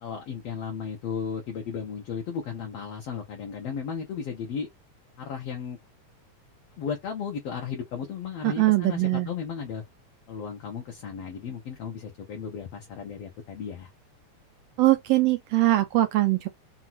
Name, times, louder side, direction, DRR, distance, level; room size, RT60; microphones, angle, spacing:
voice 1, 0.0-4.7 5.2-5.8 6.8-9.8 10.3-13.9, left 6 dB, 65° left, 2.0 m, -35 dB
voice 2, 8.4-9.3 14.8-16.5, right 17 dB, 85° right, 1.5 m, -22 dB
6.1 x 2.6 x 2.8 m
omnidirectional pair, 3.4 m